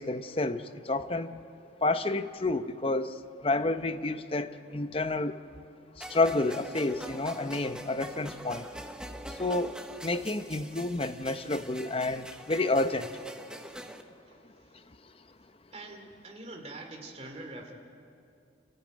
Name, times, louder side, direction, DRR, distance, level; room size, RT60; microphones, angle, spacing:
voice 1, 0.0-1.4 1.8-5.4 6.0-8.7 9.3-9.7 10.0-13.1, left 2 dB, 30° left, 10 dB, 0.8 m, -30 dB
sound 1, 6.0-14.0, right 1 dB, 5° right, 1.0 m, -44 dB
voice 2, 14.3-14.8 15.7-17.7, right 2 dB, 35° right, 3 dB, 2.8 m, -45 dB
27.5 x 15.0 x 9.2 m, 2.6 s
head